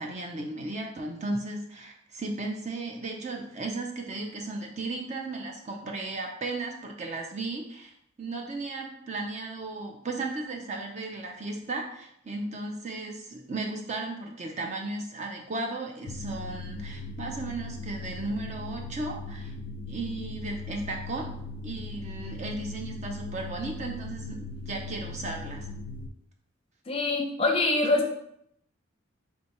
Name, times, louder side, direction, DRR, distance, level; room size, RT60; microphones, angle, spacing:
voice 1, 0.0-7.9 8.2-19.5 19.9-21.3 21.6-25.7, right 2 dB, 35° right, 1 dB, 0.5 m, -35 dB
sound 1, 16.1-26.1, left 2 dB, 80° left, 0.4 m, -39 dB
voice 2, 26.9-28.1, left 2 dB, 25° left, 2 dB, 0.6 m, -24 dB
4.2 x 3.5 x 2.9 m, 0.74 s
head